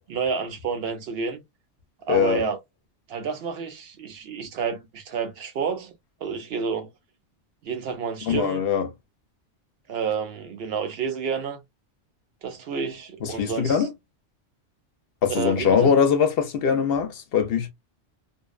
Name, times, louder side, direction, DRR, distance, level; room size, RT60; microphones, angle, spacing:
voice 1, 0.1-1.4 2.0-2.6 3.1-5.9 6.2-6.9 7.6-8.6 9.9-11.6 12.4-13.9 15.3-15.9, right 6 dB, 65° right, 0.9 m, -29 dB
voice 2, 2.1-2.4 8.2-8.9 13.2-13.9 15.2-17.7, left 7 dB, 65° left, 0.7 m, -22 dB
2.6 x 2.1 x 2.3 m
omnidirectional pair, 1.2 m